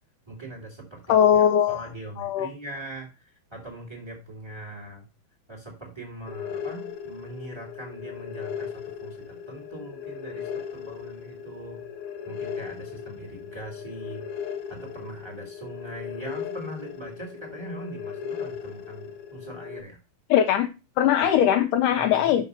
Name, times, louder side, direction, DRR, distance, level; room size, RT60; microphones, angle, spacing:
voice 1, 0.3-5.1 5.5-11.8 12.2-14.3 14.7-20.0 21.9-22.4, right 1 dB, 15° right, 0 dB, 0.9 m, -41 dB
voice 2, 1.1-1.8 2.2-2.5 20.3-20.7 21.0-22.5, left 9 dB, 85° left, 5 dB, 1.8 m, -20 dB
sound 1, 6.3-19.8, left 7 dB, 65° left, 2.0 m, -37 dB
6.0 x 5.3 x 5.2 m, 0.29 s
omnidirectional pair, 4.3 m